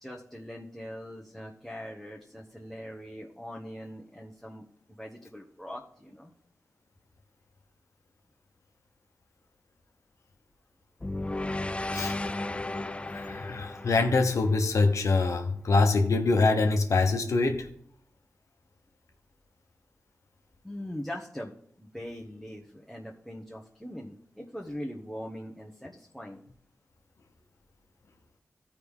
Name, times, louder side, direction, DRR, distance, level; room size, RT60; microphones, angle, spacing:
voice 1, 0.0-4.6 5.0-6.3 20.6-26.4, equal, 5° left, 1.1 m, -41 dB
sound 1, 11.0-15.3, left 2 dB, 20° left, 0.4 m, -35 dB
voice 2, 13.1-17.7, left 3 dB, 80° left, 0.9 m, -24 dB
13.5 x 4.9 x 3.6 m
cardioid pair, 45°, 5 cm